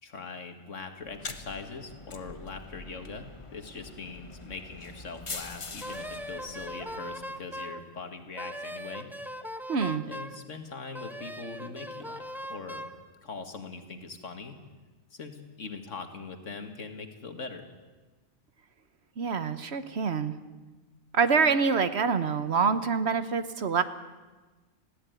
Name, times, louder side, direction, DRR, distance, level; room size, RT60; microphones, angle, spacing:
voice 1, 0.0-9.1 10.1-12.8 13.2-14.6 15.1-17.6, left 4 dB, 70° left, 7 dB, 2.1 m, -41 dB
sound 1, 1.0-7.4, left 3 dB, 25° left, 1.0 m, -44 dB
Wind instrument woodwind instrument, 5.8-7.8 8.4-10.4 10.9-13.0, equal, ahead, 0.9 m, -39 dB
voice 2, 9.7-10.0 19.2-20.3 21.1-23.8, right 5 dB, 60° right, 12 dB, 1.2 m, -26 dB
20.0 x 15.5 x 9.2 m, 1.3 s
omnidirectional pair, 1.3 m